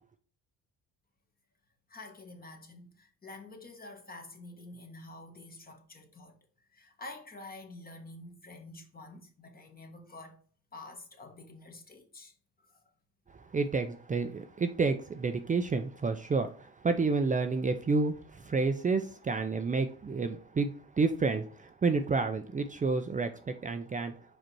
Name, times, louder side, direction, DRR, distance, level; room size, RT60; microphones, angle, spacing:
voice 1, 1.9-10.4 10.7-12.9, left 2 dB, 30° left, 1.6 m, -48 dB
voice 2, 13.3-24.1, right 4 dB, 25° right, 0.6 m, -30 dB
5.1 x 4.3 x 4.6 m
cardioid pair, 90°, 30 cm